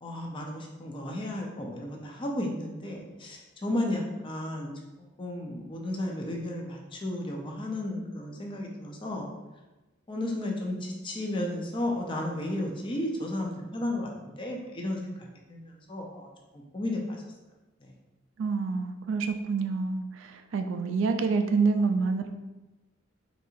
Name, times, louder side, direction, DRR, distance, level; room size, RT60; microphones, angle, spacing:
voice 1, 0.0-4.7 5.2-9.3 10.1-16.3 16.5-17.2 17.8-17.9, left 1 dB, 25° left, 0 dB, 0.5 m, -33 dB
voice 2, 18.4-20.0 20.5-22.3, right 4 dB, 65° right, 7 dB, 0.3 m, -27 dB
4.0 x 2.8 x 2.4 m, 1.1 s
head